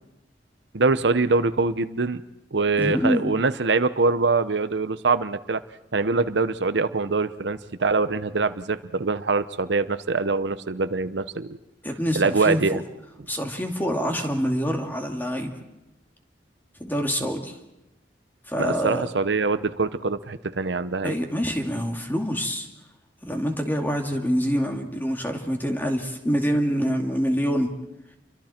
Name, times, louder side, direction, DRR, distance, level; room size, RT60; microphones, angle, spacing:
voice 1, 0.7-2.2 2.5-5.6 5.9-11.6 12.2-12.8 18.6-21.1, right 3 dB, 80° right, 12 dB, 0.8 m, -24 dB
voice 2, 2.8-3.3 11.8-12.8 13.3-15.6 16.8-17.6 18.5-19.1 21.0-22.7 23.2-27.7, equal, 10° left, 3 dB, 2.5 m, -26 dB
29.5 x 24.0 x 4.4 m, 0.94 s
head